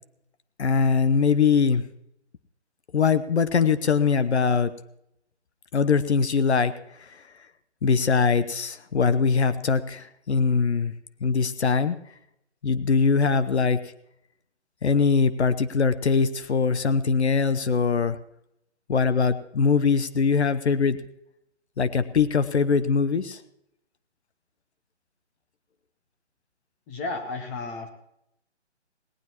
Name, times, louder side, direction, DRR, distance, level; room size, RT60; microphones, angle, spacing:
voice 1, 0.6-1.8 2.9-4.7 5.7-6.7 7.0-7.2 7.8-10.9 11.2-12.0 12.6-13.8 14.8-18.2 18.9-21.0 21.8-23.4, left 5 dB, 70° left, 13 dB, 0.9 m, -22 dB
voice 2, 26.9-27.9, left 3 dB, 10° left, 6 dB, 0.9 m, -33 dB
18.0 x 18.0 x 3.0 m, 0.79 s
figure-of-eight pair, 150°, 35 cm